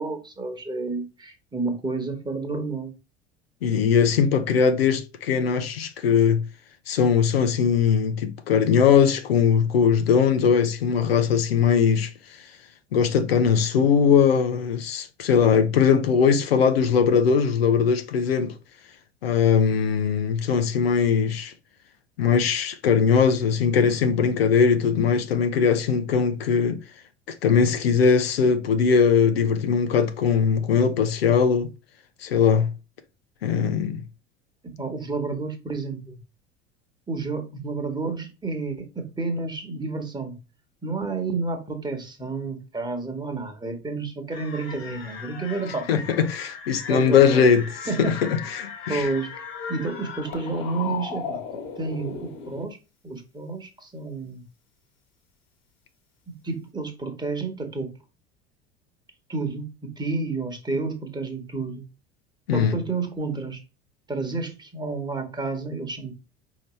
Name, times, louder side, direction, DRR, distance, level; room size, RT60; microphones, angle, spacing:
voice 1, 0.0-2.9 34.6-36.1 37.1-40.4 40.8-46.0 46.9-47.4 47.9-48.2 48.9-52.8 53.0-54.4 56.3-58.0 59.3-61.8 62.5-63.6 64.1-66.1, right 3 dB, 15° right, 1.3 m, -30 dB
voice 2, 3.6-6.4 6.9-12.1 12.9-18.5 19.2-21.5 22.2-26.8 27.4-31.7 32.2-32.7 33.4-34.0 45.9-47.6 48.0-49.1 62.5-62.8, left 6 dB, 70° left, 0.6 m, -20 dB
sound 1, 44.3-52.6, left 6 dB, 50° left, 1.5 m, -37 dB
5.1 x 3.0 x 3.1 m
figure-of-eight pair, 70°, 31 cm